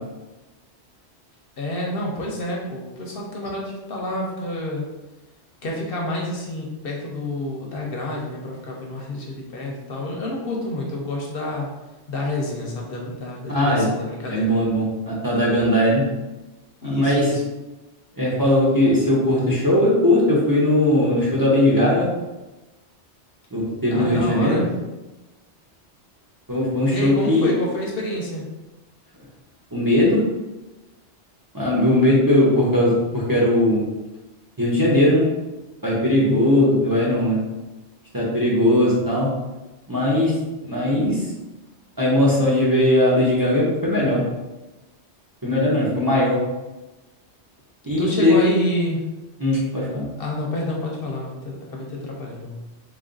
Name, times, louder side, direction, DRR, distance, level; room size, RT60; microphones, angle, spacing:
voice 1, 1.6-4.8 5.6-11.7 12.1-14.6 16.8-17.4 23.9-24.7 26.9-28.4 48.0-49.0 50.2-52.6, left 1 dB, 60° left, -2 dB, 0.8 m, -28 dB
voice 2, 13.5-13.9 14.3-16.0 16.8-17.3 18.2-22.1 23.5-24.6 26.5-27.5 29.7-30.2 31.5-33.8 34.6-35.2 35.8-37.4 38.1-39.3 39.9-40.3 40.6-41.3 42.0-44.2 45.4-46.4 47.8-48.6 49.4-50.1, left 1 dB, 20° right, -5 dB, 0.7 m, -19 dB
3.4 x 2.5 x 3.8 m, 1.1 s
omnidirectional pair, 1.2 m